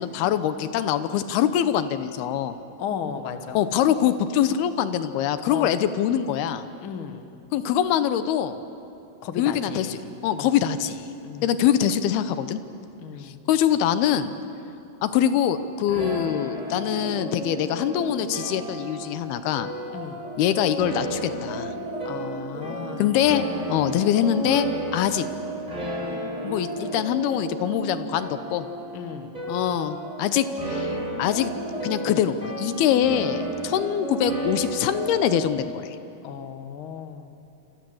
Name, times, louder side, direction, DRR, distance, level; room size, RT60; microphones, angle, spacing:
voice 1, 0.0-2.5 3.5-6.6 7.5-8.6 9.4-10.0 10.2-11.0 11.4-12.6 13.2-14.3 15.0-19.7 20.4-21.7 23.0-23.4 23.7-25.3 26.4-28.7 29.5-30.9 31.2-31.5 31.8-36.0, left 10 dB, 80° left, 11 dB, 2.9 m, -24 dB
voice 2, 2.8-3.6 5.4-5.7 6.8-7.3 9.2-10.0 10.3-10.6 11.2-11.6 13.0-13.4 19.9-20.2 22.0-23.2 28.9-29.3 36.2-37.3, left 7 dB, 55° left, 8 dB, 1.5 m, -35 dB
sound 1, 15.9-35.4, right 1 dB, 10° right, 5.7 m, -32 dB
27.5 x 26.0 x 7.9 m, 2.7 s
omnidirectional pair, 4.4 m